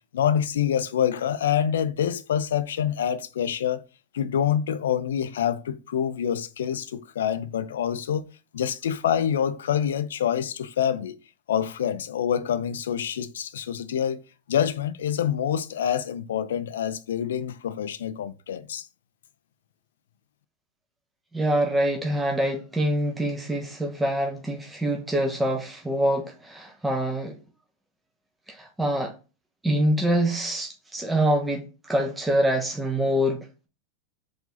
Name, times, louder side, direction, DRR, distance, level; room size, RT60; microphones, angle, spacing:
voice 1, 0.1-3.8 4.1-8.2 8.5-11.1 11.5-14.2 14.5-18.9, left 9 dB, 80° left, 0.4 m, -26 dB
voice 2, 21.3-27.3 28.5-29.1 29.6-33.7, right 1 dB, 10° right, 0.7 m, -25 dB
4.8 x 2.7 x 3.9 m
hypercardioid pair, 110°, 0 cm